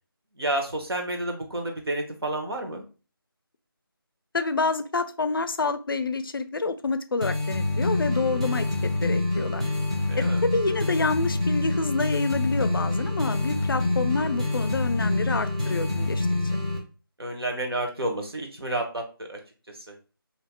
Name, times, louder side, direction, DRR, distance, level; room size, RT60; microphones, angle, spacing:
voice 1, 0.4-2.8 10.1-10.4 12.9-13.0 17.2-19.4 19.7-20.0, right 1 dB, 80° right, 2 dB, 1.1 m, -30 dB
voice 2, 4.3-9.6 10.2-16.3, left 3 dB, 65° left, 11 dB, 0.4 m, -28 dB
sound 1, 7.2-16.8, left 2 dB, 15° right, 0.3 m, -26 dB
2.7 x 2.0 x 3.6 m, 0.35 s
figure-of-eight pair, 165°, 13 cm